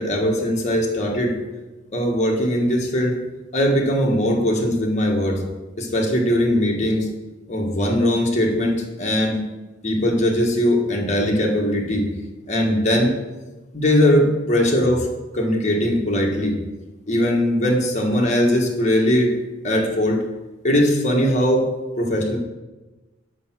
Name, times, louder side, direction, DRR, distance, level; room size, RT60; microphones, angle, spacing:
voice 1, 0.0-1.4 1.9-3.2 3.5-5.4 5.8-7.1 7.5-9.4 9.8-12.1 12.5-13.1 13.7-15.1 15.3-16.6 17.1-19.3 19.6-20.3 20.6-21.7 22.0-22.4, equal, 40° left, -1 dB, 1.5 m, -20 dB
6.7 x 5.7 x 6.1 m, 1.1 s
head